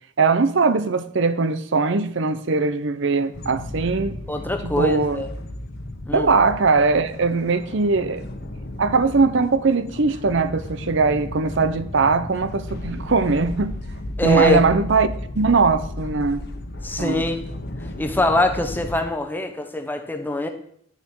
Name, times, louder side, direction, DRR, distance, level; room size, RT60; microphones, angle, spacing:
voice 1, 0.2-4.2 4.6-5.2 6.1-8.2 8.8-13.8 14.2-16.4 17.0-17.2, right 4 dB, 65° right, 0.7 m, -20 dB
sound 1, 3.3-19.0, left 1 dB, 55° left, 1.1 m, -34 dB
voice 2, 4.3-5.3 6.1-6.3 14.2-14.6 16.8-17.5 18.0-20.5, left 1 dB, 10° left, 0.9 m, -23 dB
10.5 x 6.7 x 4.7 m
head